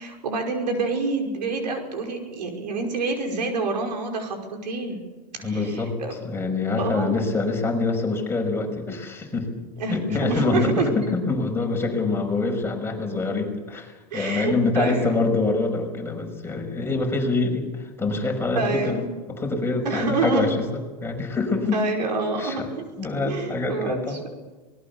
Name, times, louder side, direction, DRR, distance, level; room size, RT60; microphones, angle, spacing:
voice 1, 0.0-5.0 5.4-6.2 6.8-7.3 9.8-10.9 14.1-15.2 18.6-19.0 19.8-20.5 21.7-22.6 23.2-24.3, right 3 dB, 80° right, 3 dB, 5.4 m, -27 dB
voice 2, 5.4-9.5 9.9-19.0 19.3-20.6 21.0-21.8 22.4-22.7 23.0-24.2, left 3 dB, 10° left, 2 dB, 5.8 m, -25 dB
26.0 x 20.0 x 7.1 m, 1.2 s
hypercardioid pair, 105°, 21 cm